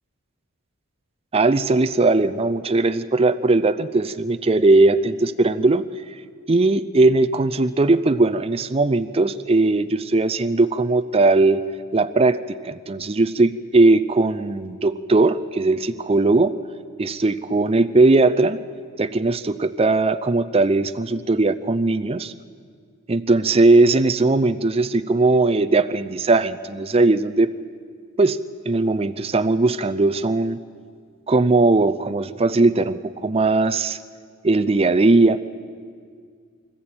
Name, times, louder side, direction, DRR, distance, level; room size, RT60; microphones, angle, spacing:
voice 1, 1.3-5.8 6.5-11.6 11.9-12.4 12.6-16.5 17.0-18.6 19.0-22.3 23.1-27.5 28.2-28.4 28.7-30.6 31.3-34.0 34.4-35.4, right 2 dB, 25° right, 11 dB, 0.5 m, -19 dB
25.0 x 14.0 x 8.8 m, 2.1 s
head